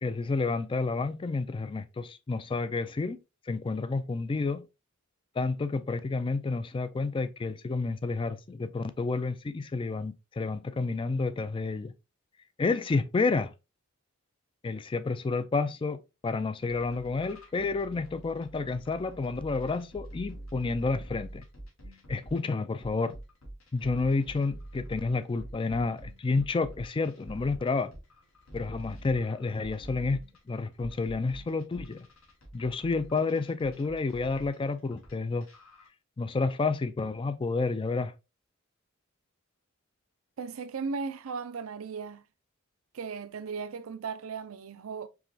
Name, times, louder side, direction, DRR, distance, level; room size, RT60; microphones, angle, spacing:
voice 1, 0.0-3.2 3.5-4.7 5.4-11.9 12.6-13.5 14.6-21.5 22.1-23.2 23.7-27.9 28.5-32.1 32.5-35.5 36.2-38.1, left 3 dB, 25° left, 0.3 m, -30 dB
sound 1, 16.7-22.4 22.8-35.1 35.4-35.9, right 1 dB, 80° left, 1.5 m, -46 dB
voice 2, 40.4-42.2 42.9-45.1, right 5 dB, 70° right, 0.5 m, -36 dB
4.7 x 3.0 x 2.7 m
head